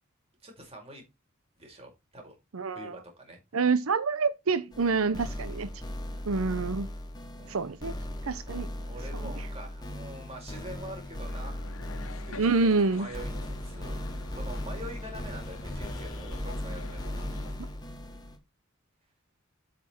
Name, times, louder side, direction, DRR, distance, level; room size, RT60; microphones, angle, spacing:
voice 1, 0.4-1.0 1.6-2.4 2.7-3.4 7.4-7.7 8.5-11.7 12.3-12.5 13.0-14.0 14.3-17.7, right 1 dB, 30° right, 5.1 m, -45 dB
voice 2, 2.5-2.9 3.5-5.7 6.3-6.9 7.5-7.9 8.3-8.7 9.1-9.2 12.4-13.1, right 4 dB, 90° right, 0.8 m, -27 dB
sound 1, 4.7-18.4, left 1 dB, 20° left, 2.6 m, -37 dB
sound 2, 11.3-17.5, left 3 dB, 85° left, 1.4 m, -48 dB
8.3 x 7.0 x 4.5 m
head